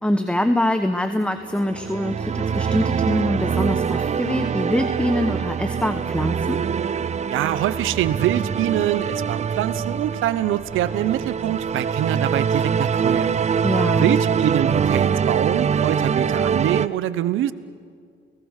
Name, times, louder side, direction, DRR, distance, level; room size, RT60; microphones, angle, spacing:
voice 1, 0.0-6.6 13.6-14.2, left 1 dB, 5° left, 8 dB, 1.1 m, -24 dB
sound 1, 1.4-16.9, right 7 dB, 35° right, 0.6 m, -24 dB
voice 2, 7.3-13.6 13.9-17.5, right 12 dB, 85° right, 15 dB, 0.9 m, -24 dB
30.0 x 18.0 x 6.6 m, 2.1 s
cardioid pair, 90°, 20 cm